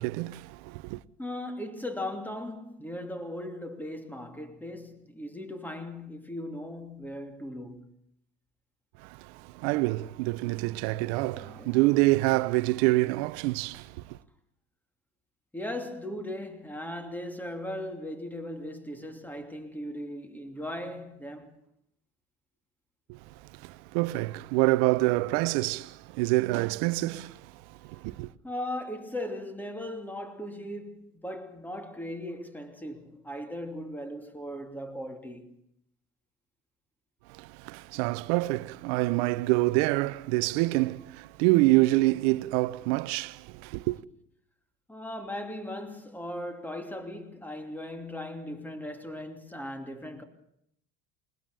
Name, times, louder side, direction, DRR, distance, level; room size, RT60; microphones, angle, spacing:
voice 1, 0.0-1.0 9.0-14.2 23.1-23.2 23.6-27.4 27.9-28.3 37.4-44.0, right 20 dB, 70° right, 0.8 m, -26 dB
voice 2, 1.2-7.9 11.3-12.0 12.7-12.9 15.5-21.6 28.4-35.6 44.9-50.2, left 1 dB, 5° left, 2.8 m, -38 dB
20.5 x 20.0 x 6.8 m
hypercardioid pair, 80°, 35 cm